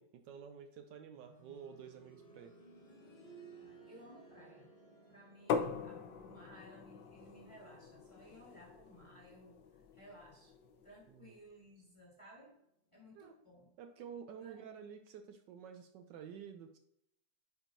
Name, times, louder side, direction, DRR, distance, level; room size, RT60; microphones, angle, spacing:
voice 1, 0.0-2.5 11.1-11.4 13.1-13.3 13.8-16.8, right 7 dB, 75° right, 6 dB, 1.2 m, -51 dB
sound 1, 1.1-11.9 12.2-12.3 13.2-13.3, right 3 dB, 35° left, 1.3 m, -61 dB
voice 2, 3.6-4.7 5.1-10.5 10.8-12.6 12.9-13.7 14.4-14.6, equal, 20° left, -3 dB, 1.2 m, -58 dB
sound 2, 5.5-11.1, left 6 dB, 75° left, 1.3 m, -42 dB
8.6 x 4.5 x 2.6 m, 0.78 s
omnidirectional pair, 2.1 m